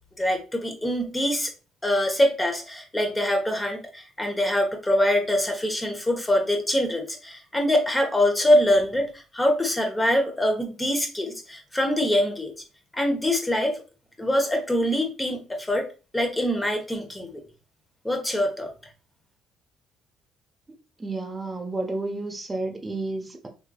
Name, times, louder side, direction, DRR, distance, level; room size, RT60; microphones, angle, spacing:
voice 1, 0.2-1.5 1.8-12.5 12.9-13.8 14.2-15.8 16.1-17.4 18.0-18.7, left 1 dB, 15° left, 1.0 m, -24 dB
voice 2, 21.0-23.5, right 2 dB, 20° right, 0.8 m, -31 dB
3.7 x 3.2 x 2.3 m
supercardioid pair, 80°, 0 cm